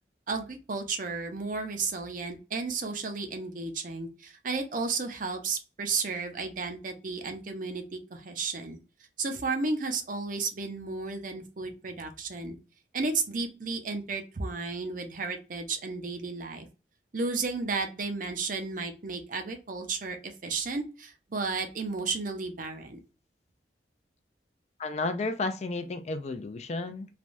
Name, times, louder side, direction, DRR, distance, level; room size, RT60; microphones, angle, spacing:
voice 1, 0.3-8.8 9.2-12.6 12.9-16.7 17.1-23.0, right 4 dB, 50° right, 0.6 m, -33 dB
voice 2, 24.8-27.1, left 3 dB, 40° left, 0.4 m, -32 dB
3.3 x 2.2 x 2.5 m
head